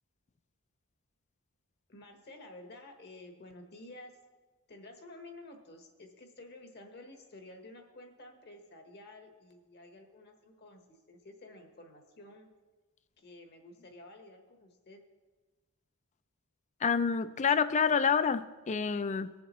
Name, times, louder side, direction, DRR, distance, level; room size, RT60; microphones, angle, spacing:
voice 1, 1.9-4.1 4.7-12.5 13.2-15.0, left 2 dB, 50° left, 4 dB, 1.2 m, -51 dB
voice 2, 16.8-19.3, left 6 dB, 30° left, 13 dB, 0.4 m, -28 dB
19.0 x 7.2 x 3.1 m, 1.3 s
head